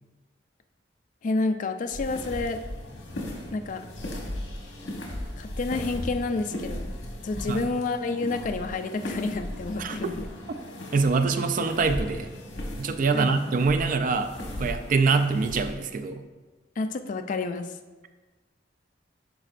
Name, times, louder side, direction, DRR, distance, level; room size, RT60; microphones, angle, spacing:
voice 1, 1.2-2.6 3.5-3.9 5.4-6.9 7.2-10.3 13.1-13.3 16.8-17.7, left 3 dB, 45° left, 7 dB, 0.4 m, -29 dB
sound 1, 1.8-15.7, left 1 dB, 80° left, 1.3 m, -37 dB
voice 2, 9.8-10.1 10.5-10.6 10.9-12.3 12.8-14.3 14.6-16.2, right 4 dB, 50° right, 8 dB, 0.4 m, -24 dB
11.0 x 5.0 x 2.5 m, 1.3 s
head